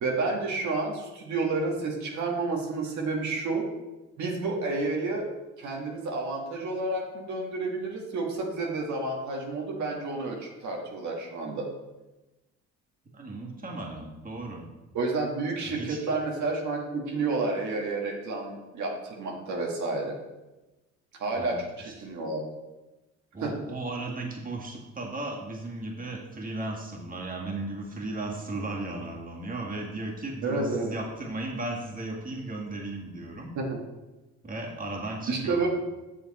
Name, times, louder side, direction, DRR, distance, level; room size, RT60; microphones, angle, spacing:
voice 1, 0.0-3.6 4.2-5.3 5.6-11.7 14.9-20.2 21.2-22.4 23.4-23.5 30.4-30.9 33.5-33.8 35.3-35.7, right 3 dB, 70° right, -1 dB, 1.7 m, -30 dB
voice 2, 13.1-14.7 15.6-16.0 21.3-21.9 23.3-33.5 34.4-35.7, right 2 dB, 30° right, -1 dB, 2.0 m, -36 dB
8.2 x 6.6 x 4.2 m, 1.1 s
cardioid pair, 90°, 30 cm